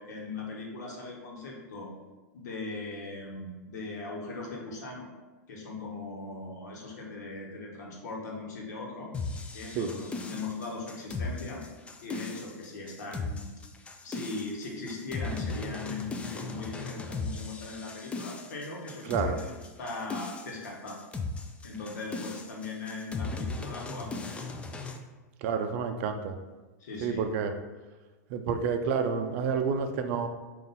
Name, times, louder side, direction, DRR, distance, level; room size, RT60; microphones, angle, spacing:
voice 1, 0.0-1.9 2.3-5.1 5.5-9.1 9.5-11.6 12.0-13.5 14.0-21.1 21.6-24.5 26.8-27.3, left 3 dB, 75° left, -1 dB, 1.0 m, -39 dB
sound 1, 9.1-25.0, left 3 dB, 15° left, 0.3 m, -37 dB
voice 2, 25.4-26.4 27.0-27.5 28.3-30.3, right 6 dB, 55° right, 7 dB, 0.4 m, -29 dB
3.8 x 2.5 x 4.0 m, 1.2 s
hypercardioid pair, 115°, 9 cm